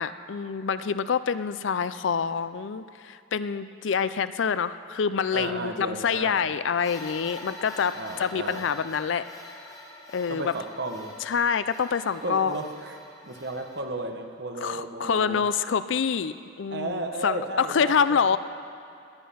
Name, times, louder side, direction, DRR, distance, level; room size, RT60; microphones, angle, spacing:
voice 1, 0.0-9.2 10.1-10.5 11.3-12.6 14.6-18.4, left 6 dB, 70° left, 14 dB, 0.4 m, -26 dB
voice 2, 5.3-6.5 7.9-8.7 10.3-11.1 12.1-13.0 13.2-15.4 16.7-18.4, right 2 dB, 55° right, 5 dB, 1.1 m, -34 dB
sound 1, 6.8-13.8, left 2 dB, 15° left, 1.3 m, -45 dB
18.5 x 10.5 x 5.7 m, 2.5 s
head